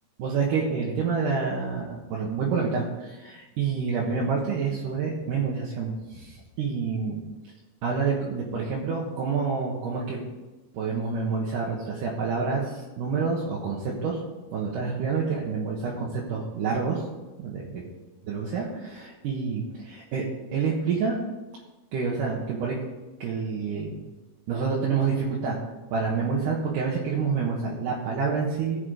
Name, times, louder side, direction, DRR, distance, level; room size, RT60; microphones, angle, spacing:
voice 1, 0.2-7.2 7.8-10.2 10.7-14.2 14.5-17.0 17.4-17.8 18.3-20.2 20.5-21.2 21.9-22.8 23.2-24.0 24.5-25.6 25.9-28.8, right 5 dB, 80° right, -4 dB, 3.0 m, -28 dB
17.5 x 6.0 x 5.2 m, 1.1 s
omnidirectional pair, 3.7 m